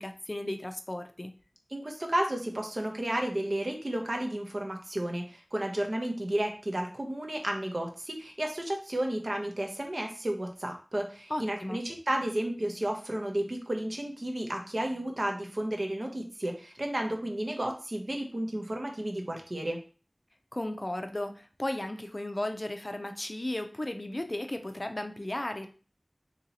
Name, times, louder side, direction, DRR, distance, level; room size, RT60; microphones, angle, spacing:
voice 1, 0.0-1.3 11.3-11.8 20.5-25.7, left 1 dB, 50° left, 6 dB, 0.4 m, -35 dB
voice 2, 1.7-19.8, right 1 dB, 60° right, 3 dB, 0.8 m, -32 dB
2.9 x 2.7 x 4.0 m, 0.38 s
wide cardioid pair, 45°, 0 cm